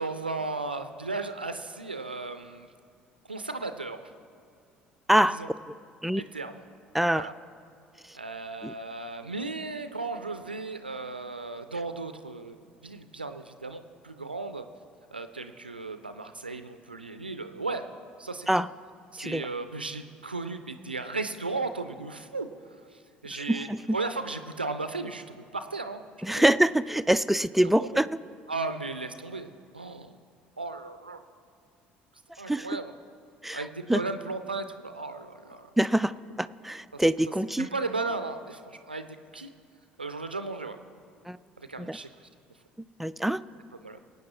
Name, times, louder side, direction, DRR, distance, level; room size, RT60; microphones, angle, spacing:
voice 1, 0.0-2.7 3.3-4.1 5.3-5.5 6.1-6.6 7.1-7.3 8.1-12.6 12.8-14.7 15.1-17.9 18.2-18.6 19.1-22.5 22.9-26.5 27.8-28.0 28.5-29.5 29.7-30.2 30.6-31.2 32.4-32.9 33.5-35.7 36.9-37.0 37.6-39.1 39.3-39.5 40.0-40.8 41.6-42.1 43.8-44.0, right 3 dB, 90° right, 9 dB, 0.4 m, -35 dB
voice 2, 6.9-7.3 8.6-8.7 18.5-18.7 19.2-19.5 23.3-23.8 26.2-28.1 32.5-32.7 33.4-33.6 33.9-34.0 35.8-36.1 36.4-37.7 41.3-41.4 41.8-42.0 43.0-43.4, right 1 dB, 5° right, 15 dB, 0.3 m, -24 dB
22.0 x 9.0 x 3.0 m, 2.3 s
figure-of-eight pair, 55°, 5 cm